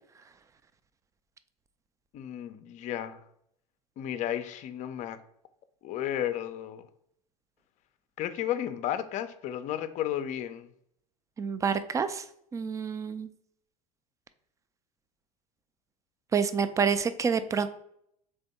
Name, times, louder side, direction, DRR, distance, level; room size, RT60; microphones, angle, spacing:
voice 1, 2.1-3.2 4.0-5.2 5.8-6.8 8.2-10.7, left 11 dB, 40° left, 11 dB, 0.5 m, -33 dB
voice 2, 11.4-12.2 12.5-13.3 16.3-17.7, right 6 dB, 15° right, 12 dB, 0.3 m, -28 dB
3.4 x 3.4 x 4.0 m, 0.72 s
hypercardioid pair, 75°, 19 cm